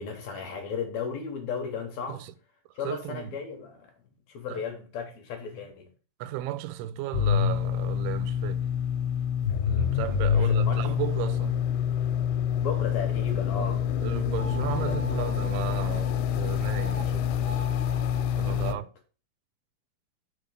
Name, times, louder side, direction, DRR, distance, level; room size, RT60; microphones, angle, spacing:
voice 1, 0.0-2.3 2.7-3.9 4.3-5.9 10.3-10.9 12.6-13.8 14.8-15.4 18.4-18.8, left 6 dB, 70° left, 1.8 m, -35 dB
voice 2, 2.8-3.4 4.5-4.6 6.2-8.7 9.7-11.6 13.6-17.6 18.4-18.9, right 13 dB, 90° right, 2.6 m, -35 dB
sound 1, 7.1-18.8, left 9 dB, 85° left, 2.5 m, -27 dB
sound 2, 14.4-16.2 16.6-17.0 17.4-18.2, left 2 dB, 45° left, 1.7 m, -42 dB
5.2 x 4.5 x 6.2 m
omnidirectional pair, 4.4 m